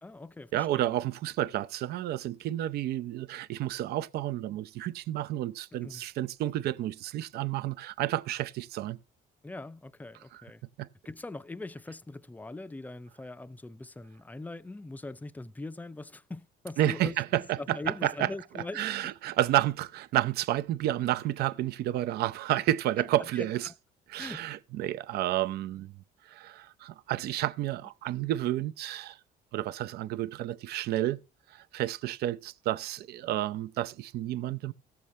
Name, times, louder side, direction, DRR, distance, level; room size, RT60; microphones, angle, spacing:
voice 1, 0.0-0.9 5.7-6.0 9.4-10.6 11.0-17.1 17.6-19.1 23.0-23.7 24.2-24.4, left 2 dB, 10° left, 0.4 m, -42 dB
voice 2, 0.5-9.0 10.3-10.4 10.8-10.9 16.8-18.3 18.7-23.7 24.1-25.9 26.3-29.2 29.5-31.2 31.5-34.7, right 14 dB, 70° right, 0.5 m, -30 dB
17.0 x 7.0 x 3.1 m
cardioid pair, 110°, 17 cm